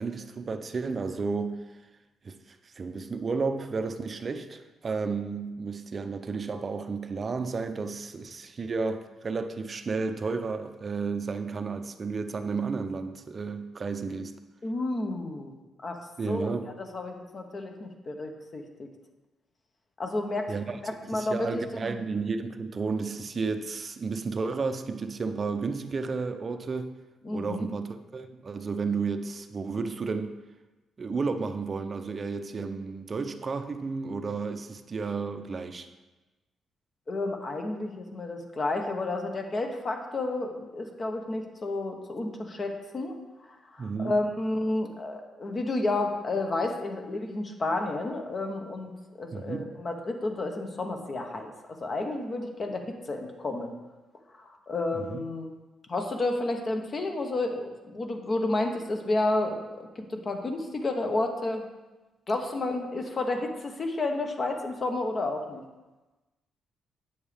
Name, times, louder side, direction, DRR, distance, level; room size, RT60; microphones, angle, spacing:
voice 1, 0.0-1.8 2.2-14.3 16.2-16.7 20.5-26.9 27.3-30.3 31.0-35.9 43.8-44.1 49.3-49.8 54.9-55.2, right 4 dB, 40° right, 8 dB, 0.6 m, -32 dB
voice 2, 14.6-15.5 15.8-18.9 20.0-22.0 27.2-27.7 37.1-43.2 43.5-48.9 49.2-51.5 51.8-53.7 54.4-55.5 55.9-61.6 62.3-65.6, left 2 dB, 40° left, 3 dB, 1.1 m, -31 dB
8.6 x 7.1 x 3.5 m, 1.1 s
cardioid pair, 95°, 0 cm